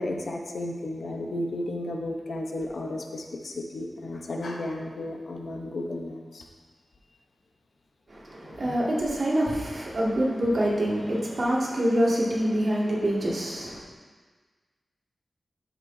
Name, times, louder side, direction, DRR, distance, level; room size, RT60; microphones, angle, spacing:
voice 1, 0.0-6.5 8.6-8.7, left 1 dB, 80° left, 1 dB, 0.9 m, -33 dB
voice 2, 8.1-13.8, equal, 50° right, -6 dB, 2.1 m, -26 dB
13.0 x 6.0 x 2.7 m, 1.4 s
wide cardioid pair, 120°, 0 cm